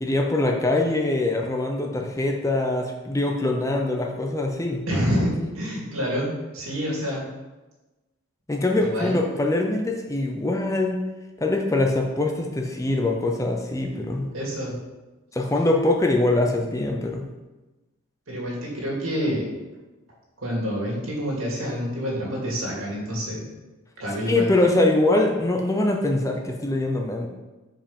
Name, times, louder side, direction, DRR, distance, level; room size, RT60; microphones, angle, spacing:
voice 1, 0.0-4.8 8.5-11.0 11.4-14.3 15.3-17.3 24.2-27.3, left 2 dB, 15° left, 2 dB, 0.6 m, -23 dB
voice 2, 4.9-6.3 6.5-7.2 8.8-9.1 14.3-14.7 18.3-19.5 20.4-23.4 24.0-24.5, equal, 80° right, -3 dB, 2.2 m, -27 dB
5.2 x 5.0 x 5.3 m, 1.1 s
head